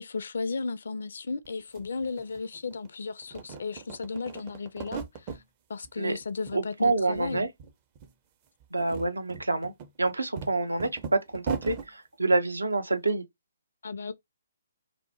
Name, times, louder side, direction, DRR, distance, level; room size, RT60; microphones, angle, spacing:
voice 1, 0.0-5.4 5.7-7.5 13.8-14.1, left 4 dB, 65° left, 0.4 m, -35 dB
sound 1, 1.4-1.5 1.7-2.9 3.2-5.4 5.8-6.6 6.8-7.7 8.0-8.1 8.6-11.9, right 6 dB, 30° right, 0.5 m, -39 dB
voice 2, 6.5-7.5 8.7-9.7 10.0-10.9 11.3-13.2, right 2 dB, 85° right, 0.6 m, -27 dB
2.8 x 2.0 x 2.7 m
figure-of-eight pair, 135°, 0 cm